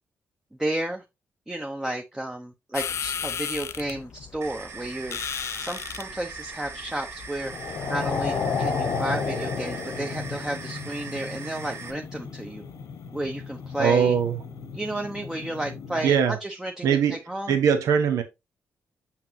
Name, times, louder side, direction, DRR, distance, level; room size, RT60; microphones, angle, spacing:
voice 1, 0.6-1.0 1.5-5.2 5.6-7.5 7.9-12.6 13.1-14.1 14.7-17.0 17.3-17.6, right 1 dB, 10° right, 0.8 m, -32 dB
sound 1, 2.7-8.4, left 7 dB, 55° left, 0.4 m, -36 dB
sound 2, 4.4-11.9, right 5 dB, 55° right, 1.0 m, -41 dB
sound 3, 7.4-16.1, left 5 dB, 80° left, 1.2 m, -33 dB
voice 2, 13.8-14.4 16.0-16.4 16.8-17.1 17.5-18.2, right 7 dB, 85° right, 1.0 m, -21 dB
5.9 x 5.9 x 2.8 m
cardioid pair, 85°, 5 cm